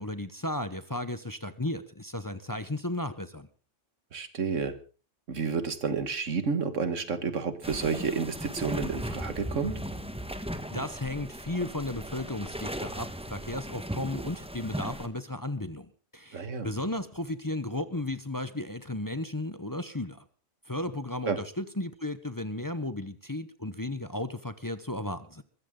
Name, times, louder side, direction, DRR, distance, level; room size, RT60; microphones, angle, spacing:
voice 1, 0.0-3.5 10.7-20.2 20.7-25.4, left 1 dB, 20° left, 12 dB, 0.8 m, -34 dB
voice 2, 4.1-4.8 5.3-9.7 16.3-16.7 21.3-21.4, right 5 dB, 90° right, 10 dB, 2.0 m, -30 dB
sound 1, 7.6-15.1, right 1 dB, 5° right, 1.2 m, -37 dB
21.5 x 15.5 x 3.8 m, 0.37 s
omnidirectional pair, 1.2 m